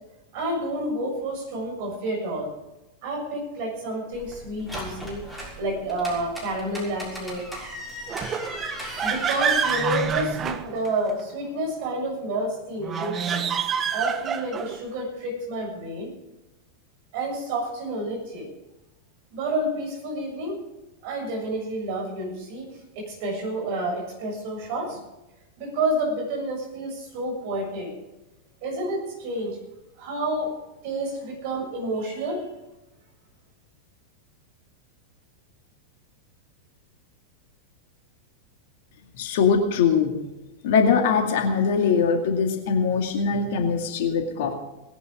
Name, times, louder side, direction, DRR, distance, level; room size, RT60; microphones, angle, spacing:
voice 1, 0.3-2.5 3.0-7.4 9.0-13.4 13.9-16.1 17.1-18.5 19.3-20.6 21.0-22.7 22.9-25.0 25.6-27.9 28.6-29.6 30.0-30.5 30.8-32.4, right 1 dB, 50° right, 0 dB, 7.2 m, -29 dB
sound 1, 4.1-10.6, equal, ahead, 6.4 m, -38 dB
sound 2, 8.1-11.2 12.8-14.8, right 7 dB, 25° right, 1.1 m, -27 dB
voice 2, 39.2-40.1 40.6-44.5, left 6 dB, 55° left, 4 dB, 2.3 m, -22 dB
19.5 x 11.0 x 5.1 m, 0.99 s
figure-of-eight pair, 90°, 0 cm